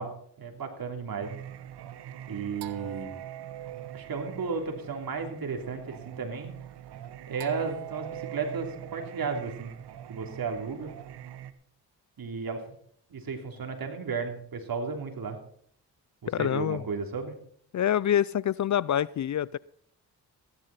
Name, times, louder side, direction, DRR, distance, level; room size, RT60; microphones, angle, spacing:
voice 1, 0.0-1.4 2.3-3.1 3.9-6.5 7.3-9.8 10.1-10.9 12.2-12.6 13.1-15.4 16.4-17.3, right 5 dB, 60° right, 4 dB, 3.2 m, -34 dB
Singing, 1.2-11.5, right 11 dB, 75° right, 1.0 m, -42 dB
voice 2, 16.3-16.8 17.7-19.6, left 10 dB, 45° left, 22 dB, 0.5 m, -26 dB
15.5 x 11.5 x 4.2 m, 0.63 s
supercardioid pair, 50°, 40 cm